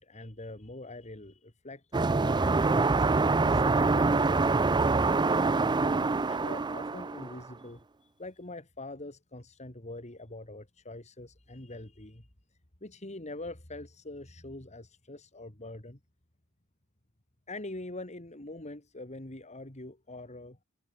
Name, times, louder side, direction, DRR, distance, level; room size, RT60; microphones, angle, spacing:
voice 1, 0.0-4.9 5.5-12.3 12.8-16.0 17.5-20.6, left 2 dB, 30° left, 2.8 m, -44 dB
sound 1, 1.9-7.5, right 3 dB, 20° right, 0.4 m, -25 dB
head